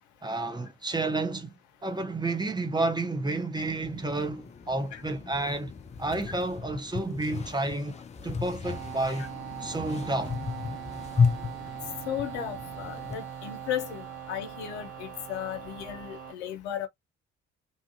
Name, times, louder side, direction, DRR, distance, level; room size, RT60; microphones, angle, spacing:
voice 1, 0.2-1.5 1.8-5.7 6.0-7.9 8.2-9.2 9.6-10.4, right 2 dB, 10° right, 0.7 m, -30 dB
sound 1, 3.6-13.2, left 5 dB, 20° left, 0.4 m, -34 dB
sound 2, 8.6-16.3, right 8 dB, 65° right, 1.3 m, -41 dB
voice 2, 12.1-16.9, left 10 dB, 70° left, 0.6 m, -35 dB
2.7 x 2.4 x 2.7 m
figure-of-eight pair, 40°, 35 cm